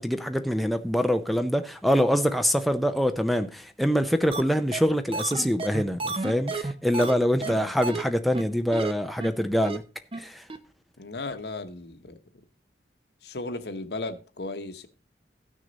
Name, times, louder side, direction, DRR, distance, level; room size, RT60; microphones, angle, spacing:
voice 1, 0.0-9.8 10.2-10.4, equal, ahead, 0.5 m, -25 dB
sound 1, 4.3-4.4 4.7-4.8 5.1-7.1 7.4-7.5 7.8-8.0 8.3-8.4 8.7-8.9 9.2-9.3 9.6-9.8 10.1-10.2 10.5-10.6, right 3 dB, 30° right, 0.8 m, -31 dB
voice 2, 7.4-7.7 11.0-12.2 13.2-14.9, left 2 dB, 70° left, 1.0 m, -35 dB
15.0 x 6.4 x 4.0 m
head